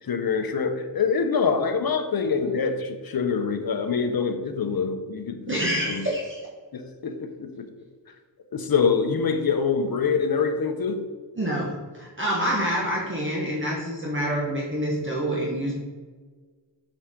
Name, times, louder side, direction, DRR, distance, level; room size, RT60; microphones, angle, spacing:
voice 1, 0.0-5.6 5.9-6.1 6.7-7.7 8.5-11.1, left 5 dB, 50° left, 8 dB, 0.8 m, -25 dB
voice 2, 5.5-6.4 11.4-15.7, equal, 25° right, -4 dB, 1.4 m, -27 dB
7.1 x 4.9 x 3.8 m, 1.4 s
cardioid pair, 80°, 45 cm